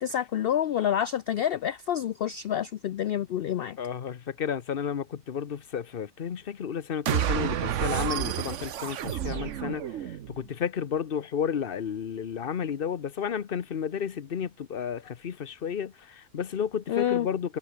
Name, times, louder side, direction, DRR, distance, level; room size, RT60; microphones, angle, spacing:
voice 1, 0.0-3.8 16.9-17.3, left 10 dB, 65° left, 0.6 m, -28 dB
voice 2, 3.8-17.6, left 7 dB, 45° left, 1.0 m, -32 dB
sound 1, 7.1-10.4, right 10 dB, 65° right, 1.1 m, -30 dB
omnidirectional pair, 1.5 m